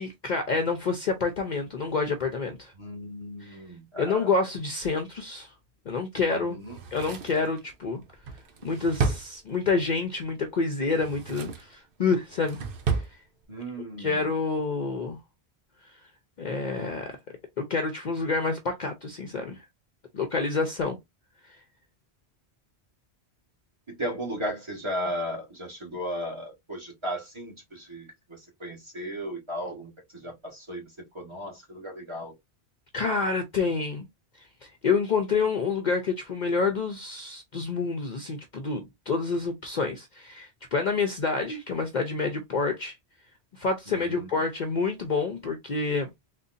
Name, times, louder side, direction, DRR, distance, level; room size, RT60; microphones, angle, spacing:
voice 1, 0.0-2.7 3.4-3.6 4.0-5.5 5.9-6.6 6.9-8.0 8.6-12.6 12.9-13.1 14.0-15.2 16.4-17.2 17.6-19.6 20.1-21.0 21.4-21.6 32.9-34.0 34.4-42.9 43.6-46.2, left 4 dB, 50° left, 0.6 m, -28 dB
voice 2, 2.8-4.3 6.3-6.8 13.5-14.2 23.9-30.9 31.1-32.3 43.9-44.3, equal, 25° right, 1.2 m, -36 dB
Drawer open or close, 6.6-9.9 10.8-11.7 12.1-13.1 13.4-13.5, right 5 dB, 60° right, 0.8 m, -32 dB
3.9 x 2.2 x 2.5 m
omnidirectional pair, 1.1 m